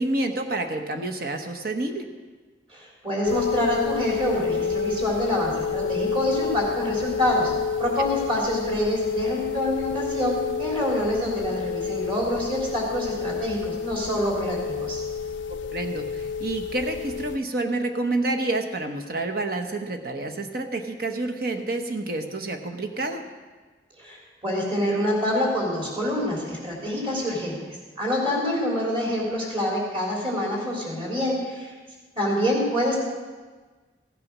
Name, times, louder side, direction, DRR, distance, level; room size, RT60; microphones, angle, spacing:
voice 1, 0.0-2.1 15.7-23.2, right 2 dB, 50° right, 5 dB, 1.1 m, -28 dB
voice 2, 2.7-15.0 24.0-31.7 32.2-33.0, left 1 dB, 30° right, -3 dB, 3.5 m, -26 dB
sound 1, 3.2-17.4, left 6 dB, 85° left, 0.4 m, -29 dB
15.0 x 8.5 x 6.2 m, 1.4 s
head